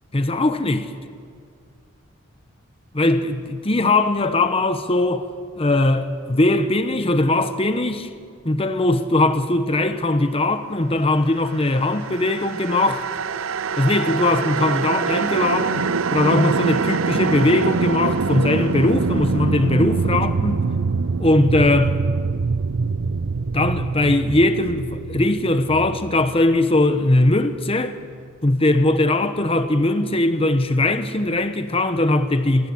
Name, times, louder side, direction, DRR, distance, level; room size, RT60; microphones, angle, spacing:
voice 1, 0.1-0.9 2.9-5.3 5.6-8.1 8.4-13.0 13.8-20.6 21.2-22.0 23.5-28.0 28.4-32.7, left 2 dB, 25° left, 1.0 m, -20 dB
sound 1, 11.8-27.0, right 4 dB, 75° right, 0.6 m, -24 dB
27.5 x 21.0 x 8.7 m
head